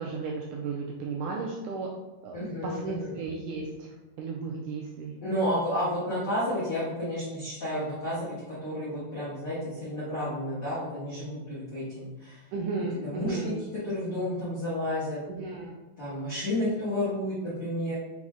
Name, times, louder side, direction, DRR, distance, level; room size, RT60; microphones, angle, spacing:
voice 1, 0.0-1.9 2.2-5.2 12.5-13.6 15.4-15.8, right 4 dB, 85° right, -1 dB, 1.8 m, -34 dB
voice 2, 2.3-3.2 5.2-12.4 13.0-15.2 16.0-17.9, left 1 dB, 85° left, -10 dB, 1.0 m, -31 dB
6.0 x 2.1 x 3.5 m, 1.1 s
omnidirectional pair, 4.1 m